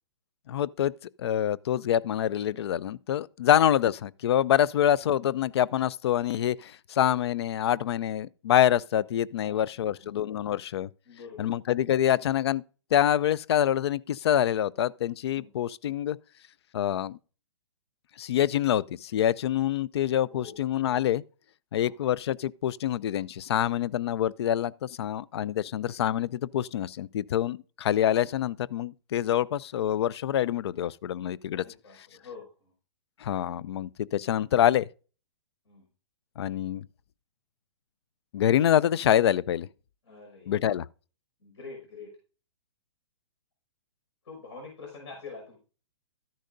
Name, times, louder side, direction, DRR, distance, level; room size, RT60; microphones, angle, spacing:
voice 1, 0.5-0.9 1.2-10.9 11.4-12.6 12.9-16.2 16.7-17.2 18.2-21.2 21.7-31.6 33.2-34.9 36.4-36.8 38.3-39.7 40.5-40.9, left 11 dB, 65° left, 0.4 m, -26 dB
voice 2, 9.4-10.1 11.1-11.5 15.4-15.5 20.3-20.6 21.8-21.9 31.5-32.7 35.7-35.9 40.0-40.5 41.4-42.1 44.2-45.6, left 4 dB, 80° left, 5.5 m, -46 dB
13.5 x 10.0 x 2.6 m
hypercardioid pair, 155°, 15 cm